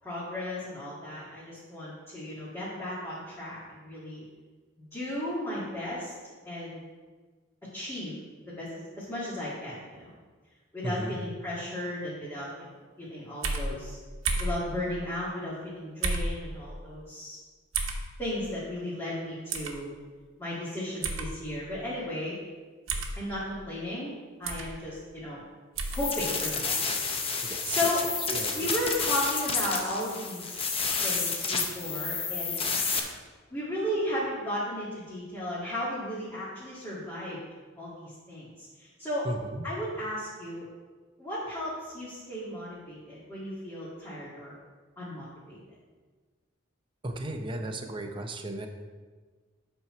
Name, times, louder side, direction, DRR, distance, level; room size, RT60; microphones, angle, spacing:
voice 1, 0.0-4.3 4.9-6.1 6.5-6.8 7.6-8.2 8.5-10.1 10.7-14.0 14.4-17.4 18.2-19.9 20.4-22.4 23.2-24.1 24.4-25.4 25.9-26.9 27.7-28.1 28.5-30.7 31.0-32.7 33.5-37.4 37.8-39.3 39.6-40.7 41.2-44.5 45.0-45.6, left 1 dB, 15° left, -10 dB, 1.9 m, -35 dB
voice 2, 10.8-11.2 27.4-27.8 28.3-28.7 39.3-39.7 47.0-48.7, right 2 dB, 25° right, 4 dB, 0.7 m, -35 dB
sound 1, 13.4-13.7 14.3-14.6 16.0-16.3 17.7-18.0 19.5-19.7 21.0-21.3 22.9-23.1 24.5-24.7 25.8-26.0, right 3 dB, 80° right, 1.0 m, -30 dB
sound 2, 25.9-33.0, left 5 dB, 30° left, 0.8 m, -30 dB
8.4 x 4.6 x 5.9 m, 1.4 s
head